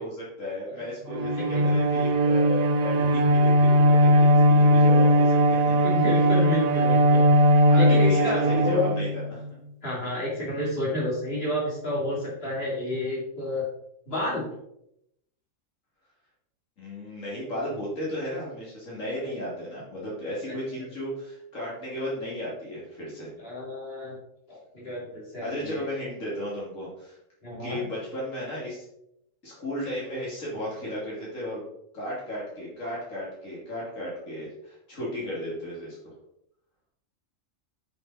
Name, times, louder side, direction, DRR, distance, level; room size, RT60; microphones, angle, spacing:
voice 1, 0.0-5.8 7.7-9.4 16.8-23.3 25.4-27.2 27.6-28.8 29.4-31.6 31.9-36.0, left 1 dB, 70° left, -7 dB, 3.0 m, -34 dB
Bowed string instrument, 1.1-9.5, equal, 80° right, 0.3 m, -19 dB
voice 2, 1.3-1.8 5.8-7.2 7.7-8.8 9.8-13.6 14.1-14.5 20.5-20.6 23.4-24.2 24.5-25.9 27.4-27.8, left 1 dB, 45° left, -5 dB, 2.8 m, -30 dB
9.9 x 5.4 x 4.1 m, 0.79 s
omnidirectional pair, 1.4 m